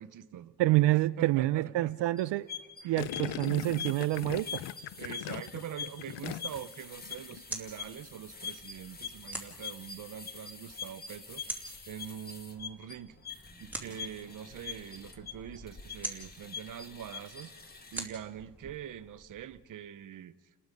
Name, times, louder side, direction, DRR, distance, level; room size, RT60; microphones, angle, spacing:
voice 1, 0.0-0.6 1.2-1.9 2.8-3.1 5.0-13.2 13.6-17.5 17.9-20.3, right 9 dB, 50° right, 0.8 m, -44 dB
voice 2, 0.6-2.5 2.8-4.6, right 16 dB, 85° right, 0.6 m, -27 dB
sound 1, 2.2-18.1, left 6 dB, 20° left, 1.6 m, -44 dB
Gurgling, 3.0-6.7 7.0-7.4, left 14 dB, 85° left, 0.6 m, -40 dB
sound 2, 6.8-19.6, right 2 dB, 5° right, 2.6 m, -47 dB
29.5 x 20.5 x 5.3 m
cardioid pair, 165°, 42 cm